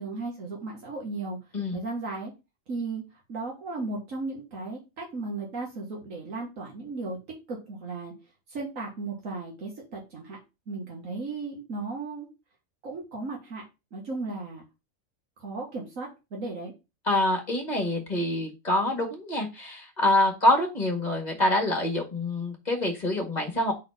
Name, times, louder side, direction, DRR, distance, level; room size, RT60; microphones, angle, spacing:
voice 1, 0.0-1.4 1.7-2.3 2.7-3.0 3.3-8.1 8.5-10.4 10.7-12.3 12.8-13.6 13.9-14.6 15.4-16.7, right 3 dB, 80° right, -1 dB, 2.0 m, -35 dB
voice 2, 17.1-23.7, left 1 dB, 35° left, 2 dB, 1.8 m, -26 dB
4.3 x 4.1 x 5.5 m, 0.26 s
omnidirectional pair, 1.4 m